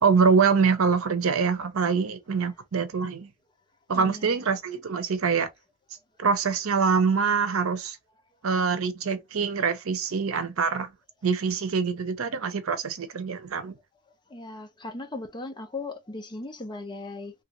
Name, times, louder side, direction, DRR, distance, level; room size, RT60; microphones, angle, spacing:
voice 1, 0.0-3.3 3.9-5.5 6.2-8.0 8.4-10.9 11.2-13.8, right 5 dB, 85° right, 0.7 m, -24 dB
voice 2, 3.9-4.2 14.3-17.3, left 2 dB, 20° left, 0.7 m, -37 dB
3.2 x 2.5 x 2.9 m
head